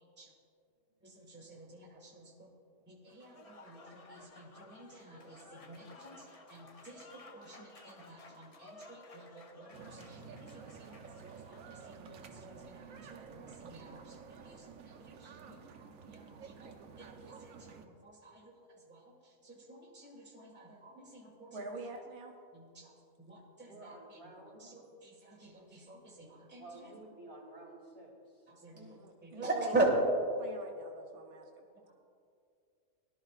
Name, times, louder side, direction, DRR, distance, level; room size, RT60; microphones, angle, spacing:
voice 1, 1.0-2.5 2.8-21.8 22.5-26.9 28.5-30.0 31.8-31.9, right 2 dB, 5° right, -2 dB, 1.7 m, -42 dB
Applause / Crowd, 3.1-11.9, left 2 dB, 35° left, 0.6 m, -56 dB
sound 1, 9.7-17.9, right 6 dB, 70° right, 1.1 m, -51 dB
voice 2, 21.5-22.3 28.7-29.6 30.4-31.7, right 3 dB, 85° right, 3 dB, 1.4 m, -46 dB
voice 3, 23.6-24.7 26.2-28.5, right 2 dB, 45° right, -1 dB, 3.1 m, -52 dB
18.0 x 11.5 x 2.4 m, 2.4 s
omnidirectional pair, 1.5 m